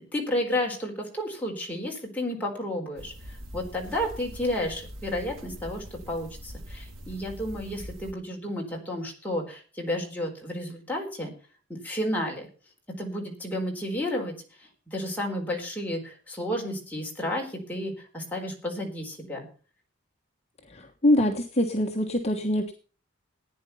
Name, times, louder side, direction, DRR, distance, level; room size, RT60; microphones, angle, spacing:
voice 1, 0.1-11.3 11.8-12.5 13.0-14.3 14.6-19.5, left 1 dB, 10° left, -1 dB, 4.1 m, -32 dB
sound 1, 3.0-8.1, equal, 90° right, 2.4 m, -43 dB
voice 2, 20.7-22.7, left 1 dB, 30° left, 2 dB, 1.3 m, -24 dB
15.0 x 9.7 x 5.7 m, 0.38 s
head